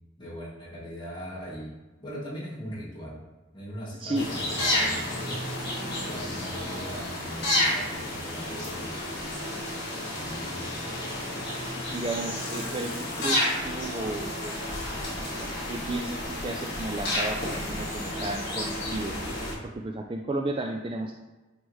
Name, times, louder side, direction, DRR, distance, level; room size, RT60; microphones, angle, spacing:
voice 1, 0.2-1.7 2.0-3.2 3.5-5.4 6.0-8.9 10.1-10.7, equal, 25° left, -6 dB, 1.8 m, -39 dB
voice 2, 4.0-4.4 11.9-14.6 15.4-19.1 19.6-21.1, right 2 dB, 25° right, 2 dB, 0.4 m, -33 dB
sound 1, 4.1-19.5, left 1 dB, 55° left, 1.7 m, -31 dB
9.5 x 3.3 x 3.2 m, 1.1 s
head